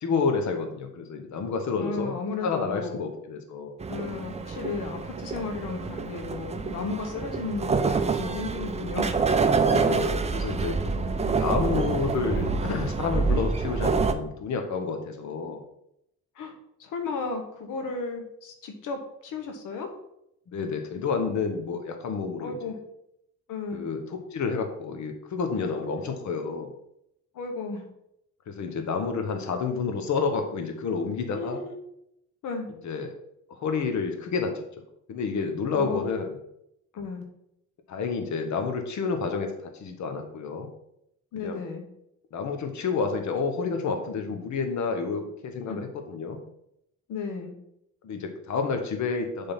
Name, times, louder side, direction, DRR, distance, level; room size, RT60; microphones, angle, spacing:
voice 1, 0.0-3.8 9.6-10.8 11.2-15.6 20.5-22.5 23.7-26.7 28.5-31.6 32.8-33.1 33.5-34.5 35.1-36.4 37.9-40.7 41.4-41.6 42.3-46.4 48.0-49.5, left 5 dB, 65° left, 5 dB, 1.1 m, -29 dB
voice 2, 1.7-3.0 3.9-9.1 10.9-11.2 16.4-16.5 16.8-19.9 22.4-22.8 23.5-23.9 25.6-26.0 27.3-27.9 31.3-31.8 32.4-32.7 35.7-36.1 36.9-37.3 41.3-41.8 45.7-45.8 47.1-47.5, left 4 dB, 85° left, 4 dB, 1.1 m, -34 dB
sound 1, 3.8-14.1, right 4 dB, 20° right, 0.5 m, -27 dB
7.1 x 3.8 x 5.7 m, 0.78 s
cardioid pair, 100°, 31 cm